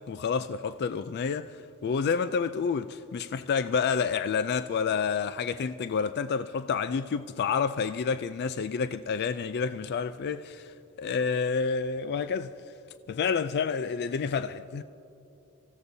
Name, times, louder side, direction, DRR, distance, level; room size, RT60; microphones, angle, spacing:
voice 1, 0.0-12.5 13.1-14.8, left 6 dB, 50° left, 0.3 m, -29 dB
25.5 x 15.5 x 2.7 m
head